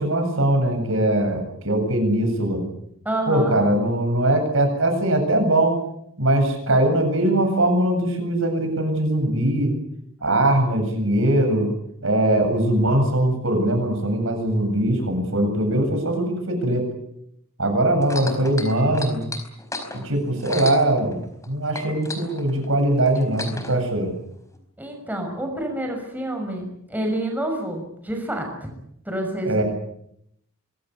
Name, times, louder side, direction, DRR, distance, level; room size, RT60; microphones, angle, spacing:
voice 1, 0.0-2.6 3.3-5.8 6.2-9.7 10.2-11.7 12.0-16.9 17.6-19.3 19.9-24.1 29.4-29.6, right 1 dB, 60° right, 5 dB, 7.9 m, -21 dB
voice 2, 3.0-3.6 24.8-28.5 29.0-29.6, right 1 dB, 10° right, 2 dB, 6.2 m, -28 dB
sound 1, 18.0-21.5 21.7-23.8 24.5-24.6, left 2 dB, 15° left, 4.7 m, -34 dB
25.0 x 21.5 x 8.4 m, 0.74 s
head